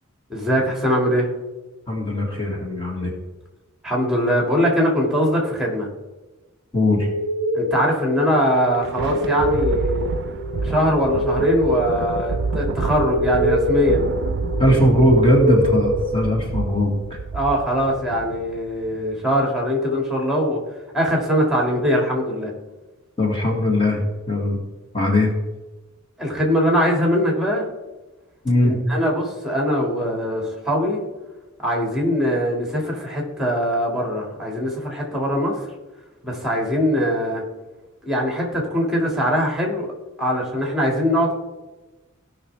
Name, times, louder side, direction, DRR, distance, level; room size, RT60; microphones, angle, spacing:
voice 1, 0.3-1.3 3.8-5.9 7.5-10.1 10.6-14.1 17.3-20.6 20.9-22.5 26.2-27.7 28.6-31.0 31.6-35.6 36.2-37.4 38.0-39.9 40.2-41.4, equal, ahead, 0 dB, 2.2 m, -22 dB
voice 2, 1.9-3.1 6.7-7.1 14.6-17.2 23.2-24.6 24.9-25.3 28.4-28.8, left 1 dB, 25° left, -1 dB, 1.8 m, -19 dB
sound 1, 7.0-16.7, equal, 75° left, 3.8 m, -25 dB
Thunder, 8.5-19.1, right 4 dB, 60° right, 0.4 m, -29 dB
17.0 x 6.0 x 3.4 m, 1.1 s
head